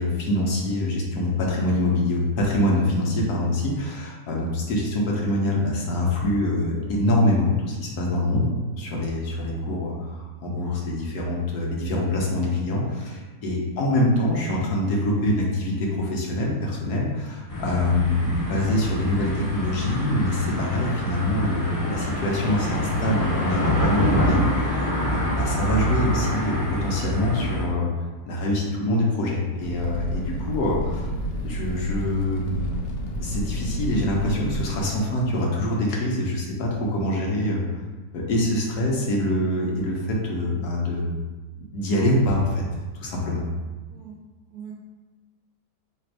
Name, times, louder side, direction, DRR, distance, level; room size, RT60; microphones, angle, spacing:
voice 1, 0.0-8.5 8.8-27.9 28.3-31.1 31.4-32.6 33.2-37.8 38.1-41.2 41.7-42.6 43.0-43.4, left 1 dB, 70° left, -2 dB, 1.2 m, -24 dB
voice 2, 4.7-4.8 13.7-13.9 43.9-44.2 44.5-44.7, right 8 dB, 70° right, -2 dB, 0.9 m, -42 dB
sound 1, 17.5-27.6, equal, 25° left, 1.4 m, -26 dB
Fire, 29.6-34.9, equal, 85° left, 1.4 m, -30 dB
3.3 x 2.5 x 4.4 m, 1.2 s
omnidirectional pair, 1.9 m